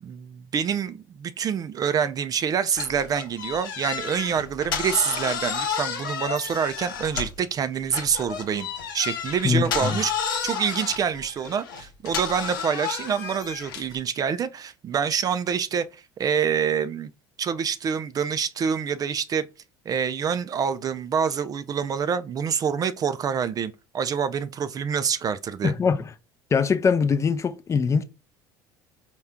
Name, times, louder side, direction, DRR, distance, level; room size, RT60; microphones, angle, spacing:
voice 1, 0.0-8.7 8.9-10.1 10.4-17.1 17.4-19.5 19.9-25.7, right 7 dB, 35° right, 0.4 m, -26 dB
sound 1, 2.7-7.5 7.9-14.0, left 7 dB, 80° left, 0.8 m, -31 dB
voice 2, 9.4-10.0 25.6-26.0 26.5-28.0, left 5 dB, 25° left, 0.5 m, -22 dB
4.3 x 2.3 x 3.5 m
hypercardioid pair, 70°, 11 cm